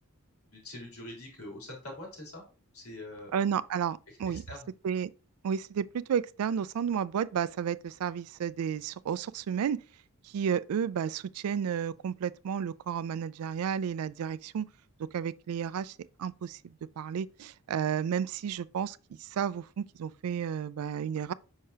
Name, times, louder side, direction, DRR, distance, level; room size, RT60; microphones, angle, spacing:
voice 1, 0.5-2.4 2.7-3.3 4.1-4.7, left 1 dB, 90° left, 3.3 m, -44 dB
voice 2, 3.3-4.4 4.8-5.1 5.4-9.8 10.2-14.7 15.0-21.3, right 8 dB, 75° right, 0.3 m, -32 dB
6.5 x 5.6 x 2.8 m
head